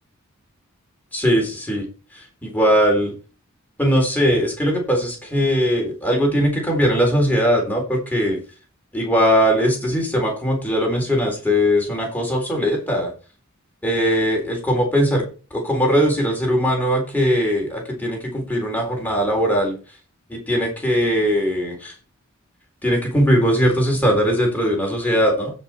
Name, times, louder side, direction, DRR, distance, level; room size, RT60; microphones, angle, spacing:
voice 1, 1.1-1.9 2.1-3.1 3.8-8.4 8.9-13.1 13.8-15.2 15.5-19.8 20.3-21.9 22.8-25.5, equal, 10° left, 0 dB, 3.8 m, -20 dB
16.0 x 5.5 x 4.4 m, 0.35 s
head